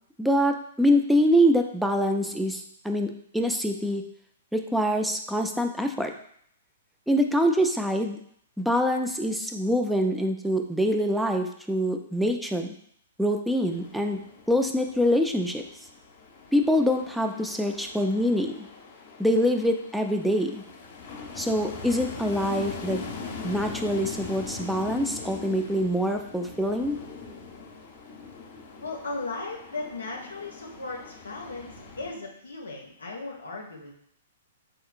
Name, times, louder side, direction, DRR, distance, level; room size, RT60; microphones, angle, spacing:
voice 1, 0.2-4.0 4.5-6.1 7.1-8.2 8.6-12.7 13.2-14.2 14.5-15.6 16.5-18.7 19.2-20.6 21.4-23.1 23.4-27.0, equal, ahead, 4 dB, 0.3 m, -25 dB
sound 1, 13.7-32.1, left 4 dB, 50° left, 0.7 m, -41 dB
voice 2, 28.8-33.9, left 3 dB, 90° left, 0 dB, 0.5 m, -36 dB
3.5 x 2.8 x 2.4 m, 0.67 s
hypercardioid pair, 120°, 0 cm